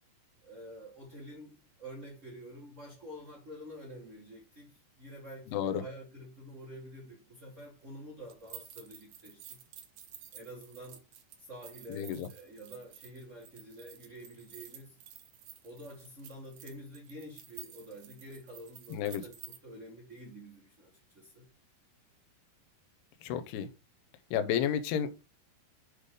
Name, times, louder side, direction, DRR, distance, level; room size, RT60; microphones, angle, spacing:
voice 1, 0.4-4.7 5.0-9.6 10.3-11.0 11.4-15.0 15.6-21.5, equal, 50° right, 0.8 m, -48 dB
voice 2, 5.5-5.8 11.9-12.3 18.9-19.2 23.2-23.7 24.3-25.1, left 9 dB, 80° left, 2.9 m, -31 dB
sound 1, 8.3-19.6, right 10 dB, 65° right, 2.2 m, -51 dB
8.2 x 5.0 x 3.8 m
omnidirectional pair, 4.8 m